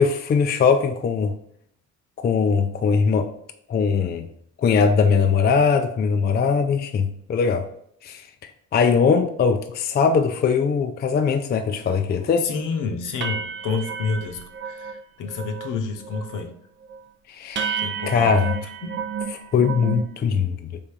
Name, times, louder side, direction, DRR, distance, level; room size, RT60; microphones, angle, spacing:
voice 1, 0.0-1.3 2.2-3.3 3.7-4.3 4.6-7.7 8.0-8.2 8.7-12.5 17.3-17.8 18.1-18.6 19.5-20.8, left 5 dB, 30° left, 0.4 m, -20 dB
sound 1, 11.7-11.8 12.2-12.4 12.7-12.8 13.2-15.0 15.3-15.8 16.0-16.5 16.9-17.0 17.6-20.1, right 6 dB, 35° right, 0.5 m, -31 dB
voice 2, 12.4-16.5 17.8-18.4 18.8-19.0, left 4 dB, 60° left, 0.8 m, -29 dB
3.5 x 2.6 x 4.5 m
supercardioid pair, 75°, 35 cm